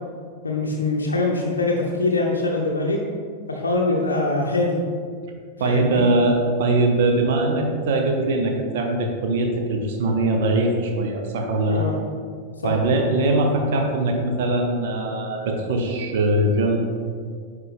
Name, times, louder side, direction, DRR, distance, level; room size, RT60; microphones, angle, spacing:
voice 1, 0.4-3.0 3.5-4.8 5.6-6.0 11.7-11.9 12.6-12.7, left 2 dB, 75° left, -1 dB, 0.6 m, -23 dB
voice 2, 5.6-11.9 12.6-16.8, right 2 dB, 55° right, 3 dB, 0.7 m, -21 dB
9.1 x 3.3 x 3.5 m, 2.1 s
figure-of-eight pair, 90°, 0 cm